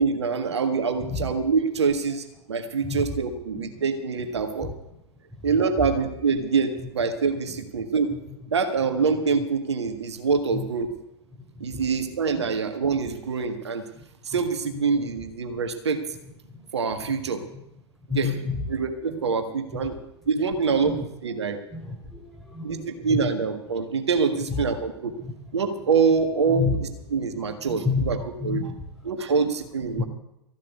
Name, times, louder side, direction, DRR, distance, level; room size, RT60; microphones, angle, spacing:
voice 1, 0.0-4.7 5.4-8.1 8.5-10.9 11.6-13.8 14.2-16.0 16.7-17.4 18.1-18.3 18.7-20.0 20.3-21.6 22.6-25.1 25.5-26.7 27.1-28.2 28.4-28.6 29.0-30.0, right 5 dB, 75° right, 7 dB, 1.7 m, -25 dB
voice 2, 11.5-11.8 12.3-12.4 14.0-14.1 14.3-14.4 14.7-15.1 16.4-16.7 17.5-17.6 18.1-18.7 19.7-19.9 20.8-21.0 21.7-23.3 24.5-24.6 25.2-25.3 26.5-26.8 27.6-28.7 29.9-30.1, left 4 dB, ahead, 1 dB, 4.1 m, -31 dB
14.5 x 7.5 x 9.3 m, 0.85 s
figure-of-eight pair, 95°, 14 cm